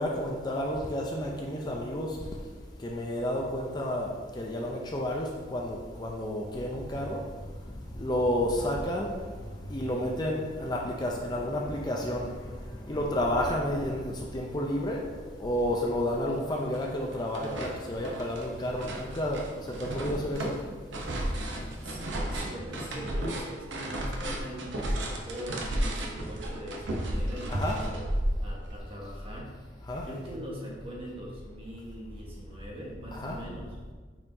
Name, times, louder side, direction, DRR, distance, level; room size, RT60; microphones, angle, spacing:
voice 1, 0.0-2.2 2.8-7.2 7.9-9.1 9.5-15.0 15.4-19.4 19.8-20.5 27.5-27.8 29.9-30.0 33.1-33.4, left 1 dB, 20° left, -1 dB, 0.5 m, -31 dB
sound 1, 15.7-15.8 16.1-16.9 17.1-28.8, right 1 dB, 75° right, 0.9 m, -33 dB
voice 2, 21.8-28.0 28.4-29.6 30.0-33.8, equal, 30° right, -4 dB, 1.3 m, -42 dB
8.8 x 4.4 x 2.7 m, 1.5 s
head